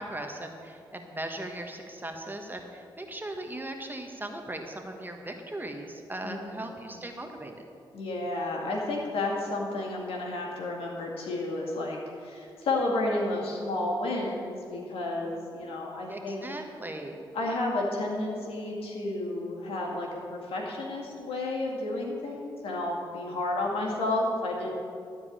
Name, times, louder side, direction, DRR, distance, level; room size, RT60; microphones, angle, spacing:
voice 1, 0.0-7.7 15.3-15.4 15.6-15.7 16.1-17.2, right 1 dB, 20° right, 3 dB, 1.4 m, -38 dB
voice 2, 6.2-6.7 7.9-16.4 17.3-24.7, left 2 dB, 75° left, -2 dB, 2.3 m, -31 dB
13.0 x 4.8 x 8.8 m, 2.5 s
supercardioid pair, 45°, 10 cm